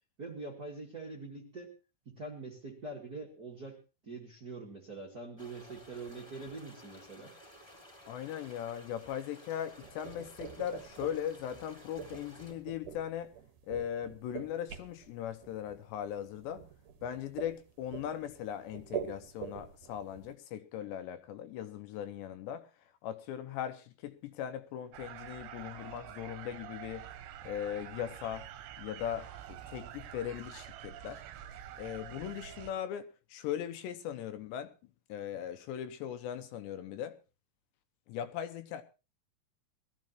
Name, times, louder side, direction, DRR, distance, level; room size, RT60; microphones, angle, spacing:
voice 1, 0.2-1.7 2.0-3.8 4.0-7.4, right 3 dB, 35° right, 1.4 m, -44 dB
sound 1, 5.4-12.5, equal, 5° left, 3.2 m, -55 dB
voice 2, 8.1-13.3 13.7-16.6 17.0-27.1 27.4-28.5 28.8-31.2 31.8-34.7 35.1-37.2 38.1-38.8, left 10 dB, 75° left, 2.9 m, -39 dB
sound 2, 9.8-20.3, right 8 dB, 60° right, 2.3 m, -45 dB
sound 3, 24.9-32.7, right 11 dB, 90° right, 3.6 m, -47 dB
21.5 x 14.5 x 3.1 m
omnidirectional pair, 5.3 m